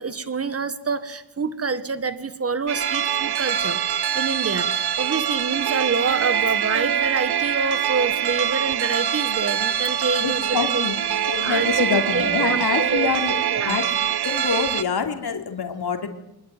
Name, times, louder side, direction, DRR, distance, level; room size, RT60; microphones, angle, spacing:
voice 1, 0.0-3.8 4.2-10.9 11.4-13.1 13.5-13.8, right 4 dB, 35° right, 11 dB, 1.7 m, -27 dB
sound 1, 2.7-14.8, right 9 dB, 70° right, 0.9 m, -24 dB
voice 2, 10.2-11.0 11.3-13.9 14.2-16.1, left 6 dB, 70° left, 4 dB, 3.6 m, -26 dB
25.5 x 21.5 x 9.2 m, 0.81 s
wide cardioid pair, 180°, 40 cm